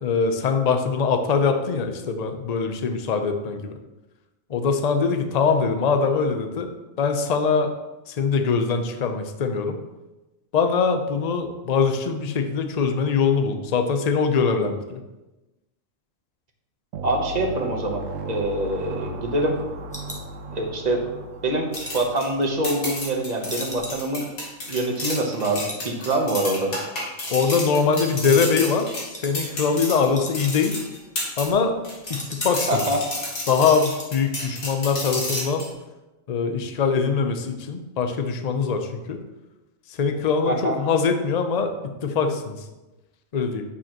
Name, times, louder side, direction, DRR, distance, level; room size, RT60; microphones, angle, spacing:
voice 1, 0.0-3.7 4.5-6.7 7.0-7.7 8.1-9.8 10.5-15.0 27.3-30.8 31.4-31.8 32.1-32.9 33.5-35.7 36.3-39.2 39.9-42.6 43.3-43.6, left 5 dB, 45° left, 6 dB, 0.6 m, -22 dB
sound 1, 16.9-23.4, right 2 dB, 70° right, 1.0 m, -36 dB
voice 2, 17.0-19.6 20.5-21.0 21.4-24.3 24.7-26.8 32.7-33.0 40.4-40.8, right 1 dB, 35° right, 2 dB, 1.0 m, -25 dB
sound 2, 18.2-21.0 21.3-23.1 23.5-25.3 25.5-25.9 26.2-26.3 26.7-27.1 27.4-28.2 28.5-28.7 29.1-29.4 29.7-29.8 30.0-31.0 31.3-32.9 33.2-33.3 33.5-34.1 34.4-34.7 35.0-35.1, equal, 5° left, 0.9 m, -41 dB
sound 3, 21.7-31.5 31.8-35.7, left 1 dB, 80° left, 2.2 m, -31 dB
8.6 x 6.7 x 3.0 m, 1.1 s
omnidirectional pair, 1.4 m